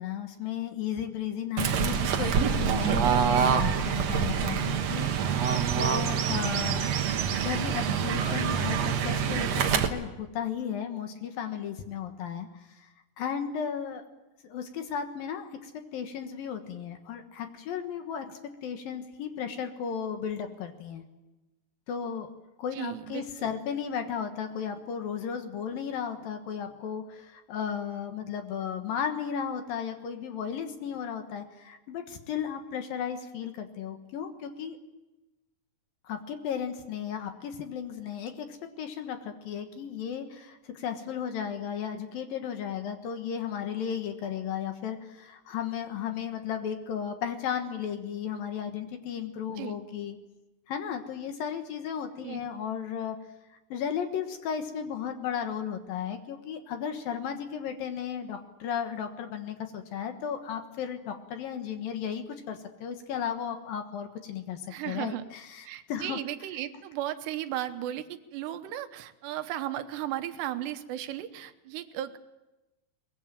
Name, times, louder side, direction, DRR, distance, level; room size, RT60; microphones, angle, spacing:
voice 1, 0.0-7.0 7.4-12.9 13.2-14.0 14.4-21.0 21.9-22.3 22.6-34.8 36.0-50.2 50.7-53.2 53.7-66.2, left 8 dB, 65° left, 6 dB, 2.8 m, -35 dB
Fowl / Bird, 1.6-9.9, right 7 dB, 65° right, 1.7 m, -26 dB
voice 2, 22.7-23.5 49.6-49.8 52.2-52.4 64.7-65.2 65.7-72.2, right 12 dB, 80° right, 9 dB, 3.1 m, -35 dB
22.5 x 20.5 x 8.9 m, 1.0 s
omnidirectional pair, 4.9 m